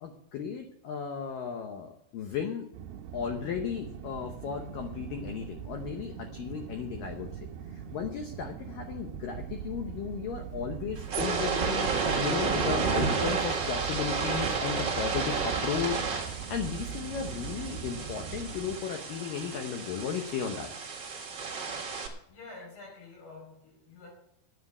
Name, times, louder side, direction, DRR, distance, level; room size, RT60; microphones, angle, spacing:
voice 1, 0.0-2.7 3.1-16.0 16.3-20.7, left 7 dB, 80° left, 5 dB, 2.0 m, -35 dB
sound 1, 2.7-18.8, right 9 dB, 75° right, 2.5 m, -41 dB
sound 2, 10.9-22.1, right 5 dB, 50° right, 1.3 m, -32 dB
voice 2, 22.3-24.1, left 3 dB, 65° left, -2 dB, 7.8 m, -48 dB
10.5 x 8.2 x 8.5 m, 0.75 s
omnidirectional pair, 5.3 m